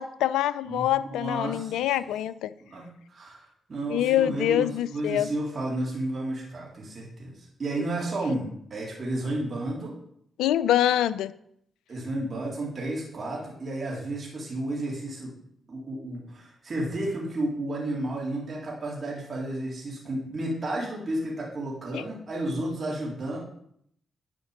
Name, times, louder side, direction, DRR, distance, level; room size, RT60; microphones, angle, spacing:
voice 1, 0.0-2.5 3.9-5.3 10.4-11.3 21.9-22.0, left 12 dB, 80° left, 17 dB, 0.3 m, -25 dB
voice 2, 0.7-1.8 2.6-10.0 11.9-15.3 15.7-23.4, right 1 dB, 50° right, -4 dB, 3.7 m, -32 dB
11.0 x 5.1 x 5.2 m, 0.70 s
hypercardioid pair, 45°, 0 cm